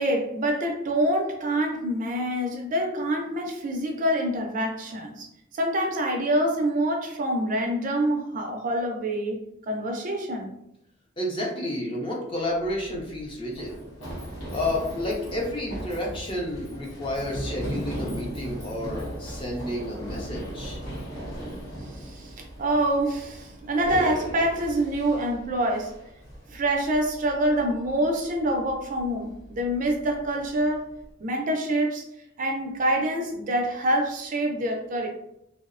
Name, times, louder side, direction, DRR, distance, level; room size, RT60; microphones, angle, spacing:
voice 1, 0.0-5.3 5.5-9.4 9.7-10.5 22.0-22.3 22.6-25.9 26.5-30.8 31.2-32.0 32.4-35.1, right 1 dB, 40° right, 2 dB, 0.4 m, -26 dB
voice 2, 11.2-13.7 14.5-20.8, left 1 dB, 25° left, -2 dB, 0.5 m, -30 dB
Run, 12.5-31.1, equal, 80° left, 0.9 m, -38 dB
2.6 x 2.0 x 2.4 m, 0.81 s
head